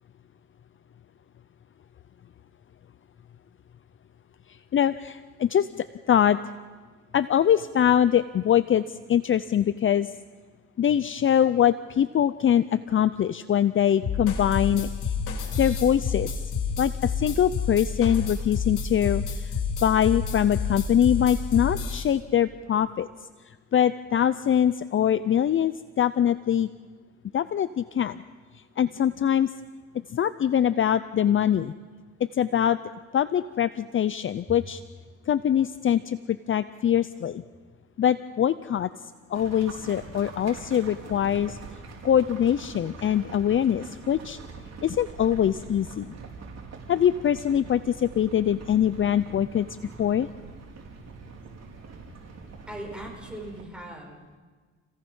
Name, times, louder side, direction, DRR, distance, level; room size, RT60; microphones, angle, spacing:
voice 1, 4.7-6.4 7.1-8.8 9.1-10.1 10.8-15.1 15.6-16.4 16.8-19.5 19.8-23.1 23.7-26.7 27.3-28.2 28.8-29.5 30.1-31.7 32.3-32.8 33.1-34.8 35.3-37.4 38.0-38.9 39.3-41.6 42.0-44.4 44.8-46.1 46.9-49.7 50.0-50.3, left 9 dB, 40° left, 14 dB, 0.6 m, -23 dB
sound 1, 14.0-22.0, left 5 dB, 85° left, 3.4 m, -29 dB
sound 2, 39.3-53.6, right 4 dB, 60° right, 5.0 m, -43 dB
voice 2, 52.7-54.4, right 1 dB, 5° right, -1 dB, 7.3 m, -39 dB
29.5 x 17.0 x 5.6 m, 1.5 s
cardioid pair, 90°, 30 cm